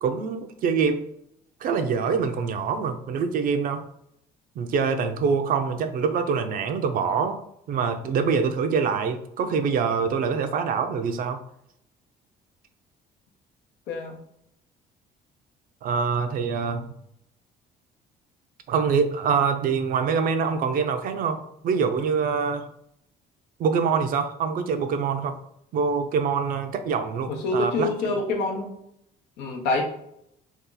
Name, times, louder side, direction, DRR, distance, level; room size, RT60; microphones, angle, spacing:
voice 1, 0.0-1.1 1.6-3.9 4.6-7.4 7.7-11.4 15.8-16.9 18.7-22.7 23.6-25.4 25.7-28.2, right 5 dB, 55° right, 8 dB, 0.4 m, -25 dB
voice 2, 13.9-14.2 27.3-28.8 29.4-29.8, left 2 dB, 90° left, 2 dB, 0.7 m, -26 dB
2.7 x 2.3 x 3.8 m, 0.73 s
cardioid pair, 110°, 17 cm